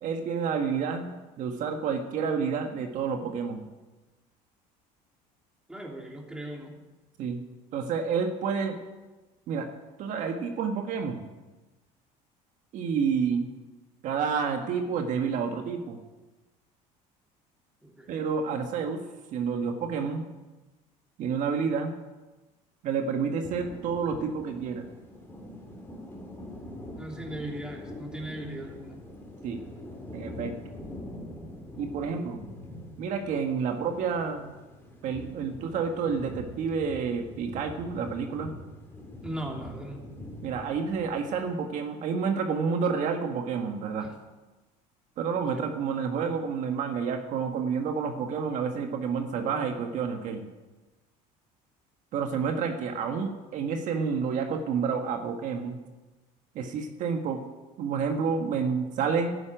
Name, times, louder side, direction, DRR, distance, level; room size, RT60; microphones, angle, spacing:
voice 1, 0.0-3.6 7.2-7.4 7.7-8.8 9.5-9.7 10.0-11.3 12.7-13.5 14.0-16.0 18.1-19.0 19.3-20.3 21.2-21.9 22.8-24.8 29.4-29.6 30.1-30.6 31.8-32.4 33.0-34.5 35.0-38.5 40.4-44.1 45.2-50.5 52.1-55.8 56.6-57.4 57.8-59.4, right 6 dB, 55° right, 4 dB, 1.7 m, -29 dB
voice 2, 5.7-6.8 17.8-18.3 27.0-29.0 39.2-40.0 44.0-44.1 45.5-45.6, right 1 dB, 5° right, 0 dB, 3.1 m, -38 dB
sound 1, 23.4-41.6, left 1 dB, 15° left, 3.5 m, -44 dB
12.0 x 11.0 x 9.1 m, 1.1 s
cardioid pair, 130°, 15 cm